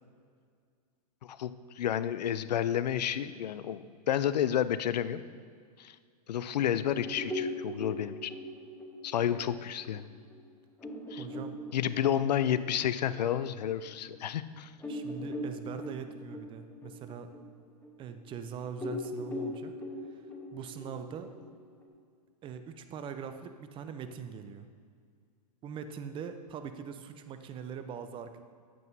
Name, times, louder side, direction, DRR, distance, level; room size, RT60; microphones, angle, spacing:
voice 1, 1.8-5.2 5.8-6.0 6.3-8.3 9.0-10.1 11.1-11.2 11.7-14.7, left 10 dB, 80° left, 14 dB, 0.4 m, -30 dB
sound 1, 6.8-13.9 14.3-14.4 14.8-18.4 18.8-21.9, left 1 dB, 10° left, 1.0 m, -40 dB
voice 2, 11.2-11.6 14.9-17.3 18.0-19.7 20.5-21.3 22.4-24.7 25.6-28.4, right 7 dB, 25° right, 9 dB, 0.5 m, -42 dB
9.1 x 7.6 x 2.7 m, 2.1 s
hypercardioid pair, 115°, 21 cm